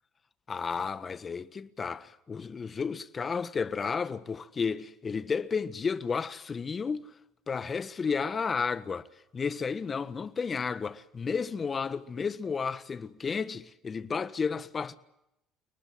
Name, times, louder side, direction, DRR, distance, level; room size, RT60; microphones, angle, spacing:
voice 1, 0.5-7.1 7.5-9.1 9.3-15.0, left 5 dB, 35° left, 1.4 m, -32 dB
30.0 x 19.5 x 7.9 m
hypercardioid pair, 65°, 0 cm